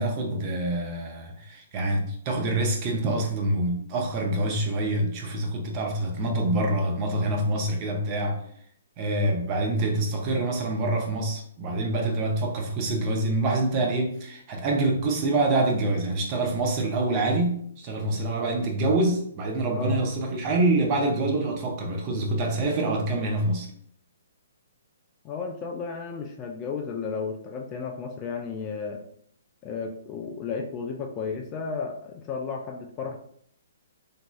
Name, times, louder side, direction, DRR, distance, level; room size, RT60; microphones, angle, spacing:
voice 1, 0.0-8.4 9.0-23.7, right 2 dB, 35° right, 0.6 m, -26 dB
voice 2, 25.2-29.0 29.6-33.2, left 5 dB, 25° left, 0.4 m, -33 dB
2.9 x 2.6 x 2.3 m
hypercardioid pair, 135°, 0 cm